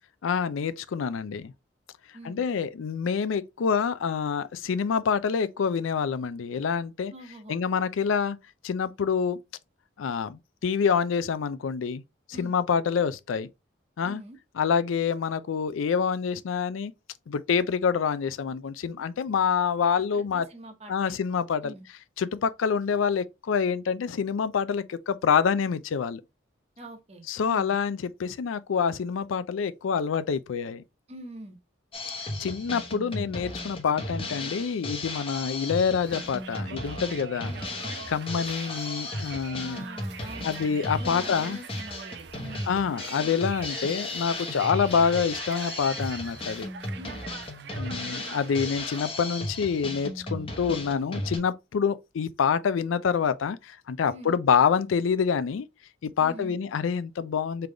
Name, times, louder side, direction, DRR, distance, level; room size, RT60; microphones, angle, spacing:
voice 1, 0.2-1.5 2.2-7.1 7.5-8.4 8.6-9.4 10.0-12.0 12.4-13.5 14.0-14.2 14.6-16.9 17.3-20.5 20.9-21.7 22.2-26.2 27.3-30.8 32.4-37.5 38.1-39.8 40.4-41.6 42.7-46.7 47.8-55.7 56.0-57.7, left 6 dB, 90° left, 0.4 m, -27 dB
voice 2, 7.1-7.6 12.3-12.6 14.0-14.4 20.1-21.1 21.6-21.9 26.8-27.7 31.1-31.6 37.4-37.6 39.6-42.8 46.9-47.3 54.1-54.4 56.2-56.6, right 1 dB, 30° right, 0.9 m, -44 dB
Drum kit, 31.9-51.4, left 2 dB, 30° left, 0.8 m, -35 dB
Conversation, 36.0-49.0, right 7 dB, 60° right, 0.4 m, -44 dB
3.8 x 3.4 x 3.3 m
head